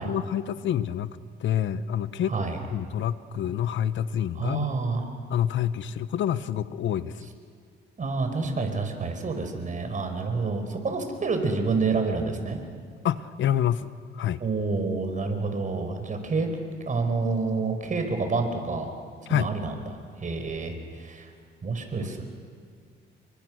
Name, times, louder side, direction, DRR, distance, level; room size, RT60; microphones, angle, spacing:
voice 1, 0.0-2.3 2.7-4.7 5.3-7.3 13.0-14.4 19.3-19.5, left 10 dB, 70° left, 14 dB, 0.9 m, -27 dB
voice 2, 4.3-5.1 8.0-12.6 14.4-16.5 16.8-18.9 19.3-19.7 20.2-21.3 21.6-22.2, right 4 dB, 40° right, 5 dB, 4.8 m, -28 dB
30.0 x 23.5 x 6.3 m, 2.2 s
cardioid pair, 90°, 20 cm